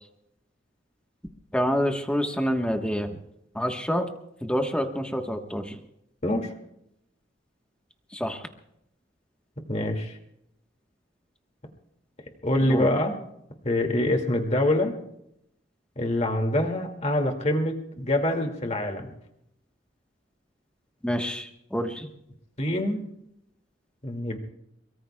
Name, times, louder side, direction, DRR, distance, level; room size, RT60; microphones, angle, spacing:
voice 1, 1.5-3.1 3.5-4.1 4.4-5.8 8.1-8.4 12.7-12.9 21.0-22.1, equal, 5° left, 4 dB, 1.2 m, -27 dB
voice 2, 9.7-10.1 12.4-13.2 13.6-15.0 16.0-19.1 22.6-23.0 24.0-24.4, left 1 dB, 40° left, 3 dB, 2.3 m, -25 dB
23.5 x 22.5 x 2.3 m, 0.77 s
head